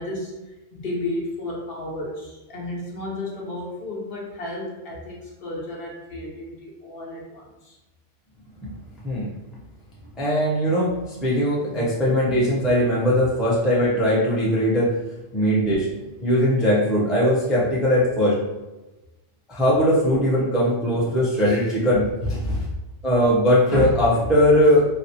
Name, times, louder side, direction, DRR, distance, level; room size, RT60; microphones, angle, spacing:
voice 1, 0.0-7.8, left 1 dB, 55° left, -3 dB, 0.8 m, -33 dB
voice 2, 10.2-11.0 11.2-15.0 15.3-15.9 16.2-18.4 19.5-22.6 23.0-24.8, equal, ahead, -7 dB, 0.5 m, -20 dB
4.2 x 2.0 x 2.8 m, 1.1 s
omnidirectional pair, 1.3 m